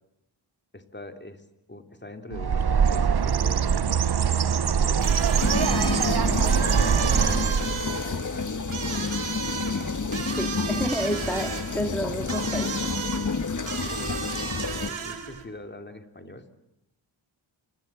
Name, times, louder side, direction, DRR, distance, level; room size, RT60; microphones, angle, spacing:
voice 1, 0.7-5.2 5.8-6.5 7.1-7.7 8.0-8.7 13.9-16.4, left 2 dB, 20° left, 6 dB, 3.3 m, -44 dB
Bird, 2.3-7.9, right 7 dB, 55° right, 1.0 m, -23 dB
sound 1, 5.0-15.4, right 6 dB, 80° right, 3.8 m, -34 dB
sound 2, 5.4-14.9, left 4 dB, 40° left, 1.7 m, -30 dB
voice 2, 10.4-12.9, equal, 5° left, 5 dB, 2.4 m, -30 dB
29.5 x 26.0 x 7.5 m, 0.88 s
cardioid pair, 65°, 48 cm